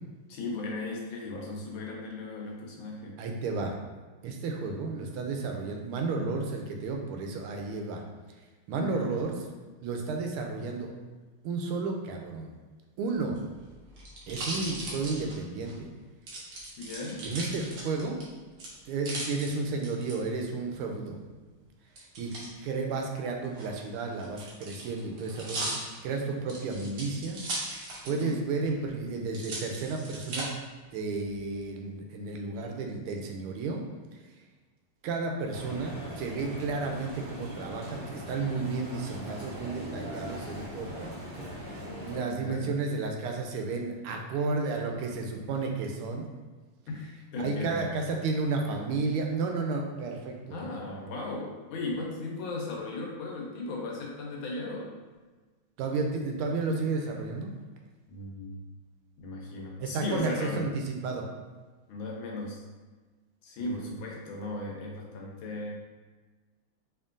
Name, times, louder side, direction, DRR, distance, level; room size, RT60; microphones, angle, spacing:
voice 1, 0.3-3.2 8.8-9.1 16.8-17.3 28.2-28.4 42.2-42.7 46.9-47.9 50.5-54.9 58.1-58.7 59.2-60.7 61.9-62.6 63.4-65.7, left 2 dB, 75° left, -1 dB, 1.5 m, -36 dB
voice 2, 3.2-3.7 4.2-8.0 8.7-9.4 9.8-10.9 11.4-12.5 13.0-13.4 14.3-15.9 17.2-18.2 18.8-21.2 22.2-27.4 28.0-30.5 30.9-33.8 35.0-46.3 47.4-50.7 55.8-57.5 59.8-61.2 63.6-63.9, right 3 dB, 90° right, 2 dB, 1.5 m, -32 dB
sound 1, 13.2-15.7 16.3-18.2 18.6-20.1 22.0-22.5 23.4-28.3 28.7-28.8 29.3-30.4 31.1-31.6, right 2 dB, 65° right, 1.6 m, -38 dB
sound 2, 35.5-42.2, equal, 30° right, 1.4 m, -41 dB
4.4 x 3.1 x 2.5 m, 1.3 s
omnidirectional pair, 2.3 m